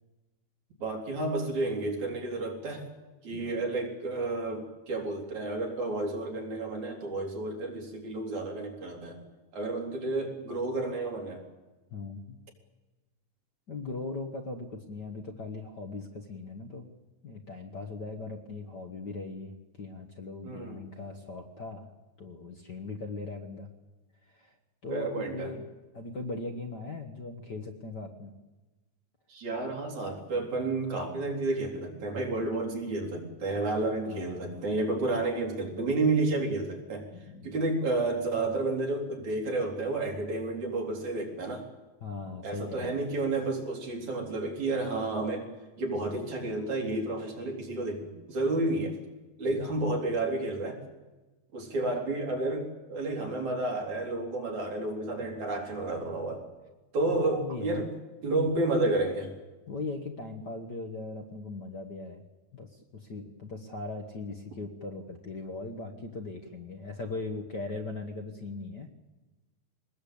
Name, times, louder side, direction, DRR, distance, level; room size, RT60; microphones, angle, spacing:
voice 1, 0.8-2.9 3.2-9.2 9.5-11.4 20.4-20.9 24.9-25.5 29.3-37.1 37.4-41.6 42.4-45.5 45.8-48.9 49.4-50.8 51.5-56.4 56.9-57.9 58.2-59.3, right 2 dB, 70° right, 0 dB, 4.8 m, -31 dB
voice 2, 11.9-12.4 13.7-16.9 17.2-21.9 22.2-23.7 24.2-24.6 24.8-25.6 25.9-28.3 34.1-34.6 37.1-37.5 42.0-43.0 49.7-49.9 57.0-57.9 59.7-62.2 62.5-68.9, left 3 dB, 45° left, 4 dB, 1.6 m, -39 dB
23.0 x 20.0 x 8.6 m, 1.2 s
omnidirectional pair, 3.4 m